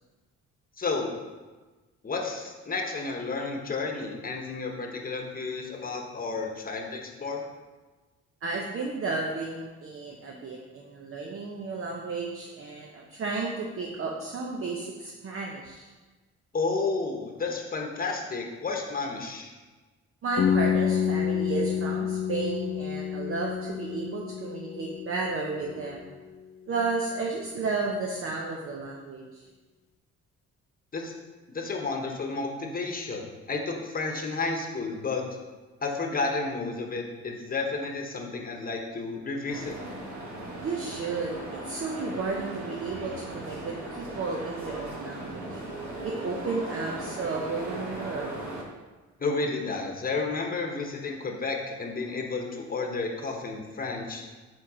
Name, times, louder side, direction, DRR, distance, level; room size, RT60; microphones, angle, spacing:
voice 1, 0.8-1.1 2.0-7.4 16.5-19.5 30.9-31.1 31.5-35.3 35.8-39.8 49.2-54.2, left 3 dB, 30° left, 1 dB, 1.1 m, -31 dB
voice 2, 8.4-15.9 20.2-26.0 26.7-29.5 40.6-45.6 46.0-48.4, right 4 dB, 45° right, -1 dB, 0.8 m, -33 dB
sound 1, 20.4-26.1, left 8 dB, 50° left, 0.4 m, -29 dB
sound 2, 39.5-48.6, right 1 dB, 65° right, 1.4 m, -38 dB
4.6 x 4.4 x 4.8 m, 1.3 s
cardioid pair, 90°, 30 cm